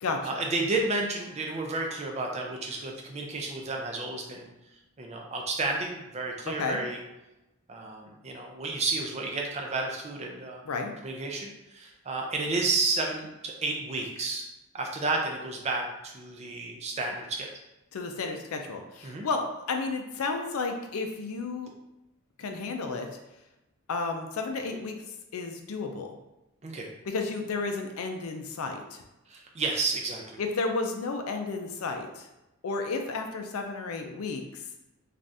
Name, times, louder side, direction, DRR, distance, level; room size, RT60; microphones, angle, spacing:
voice 1, 0.2-4.5 5.0-7.0 7.7-10.6 11.0-14.5 14.7-17.5 19.0-19.3 26.6-26.9 29.3-30.4, right 3 dB, 30° right, 1 dB, 0.4 m, -31 dB
voice 2, 6.5-6.8 10.7-10.9 17.9-21.7 22.4-23.1 23.9-25.0 25.3-26.2 27.1-29.0 30.4-32.3 32.6-34.6, left 4 dB, 75° left, 4 dB, 0.4 m, -32 dB
3.3 x 2.4 x 2.6 m, 0.96 s
head